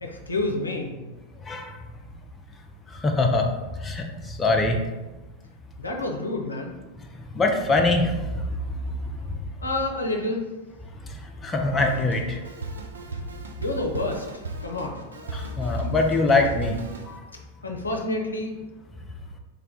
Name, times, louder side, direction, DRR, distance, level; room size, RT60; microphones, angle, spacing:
voice 1, 0.0-1.1 5.8-6.7 9.6-10.4 13.6-15.0 17.6-18.5, left 2 dB, 75° left, 2 dB, 0.4 m, -29 dB
voice 2, 2.9-3.5 3.8-4.8 7.3-8.4 11.4-12.4 15.3-16.8 17.1-17.2, left 2 dB, 15° left, 2 dB, 0.4 m, -23 dB
Drum kit, 11.8-17.2, right 3 dB, 70° right, 0.4 m, -36 dB
3.3 x 2.3 x 3.7 m, 1.1 s
figure-of-eight pair, 90°, 0 cm